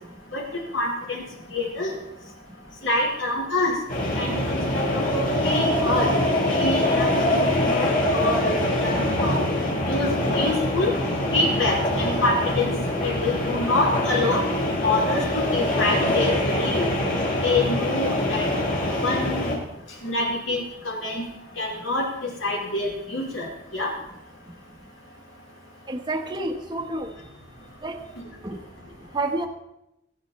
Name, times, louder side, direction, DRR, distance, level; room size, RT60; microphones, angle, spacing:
voice 1, 0.7-1.2 1.5-1.9 2.8-3.8 4.1-6.1 6.5-9.4 9.9-10.9 11.3-12.7 13.0-14.4 14.8-16.9 17.4-18.4 19.0-19.6 20.0-21.2 21.6-23.9, left 2 dB, 80° left, -1 dB, 4.6 m, -26 dB
sound 1, 3.9-19.5, left 1 dB, 45° left, 5.3 m, -24 dB
voice 2, 25.9-27.1 27.8-28.0 28.4-28.6 29.1-29.5, right 2 dB, 25° right, 4 dB, 1.2 m, -29 dB
22.5 x 9.4 x 4.3 m, 0.85 s
head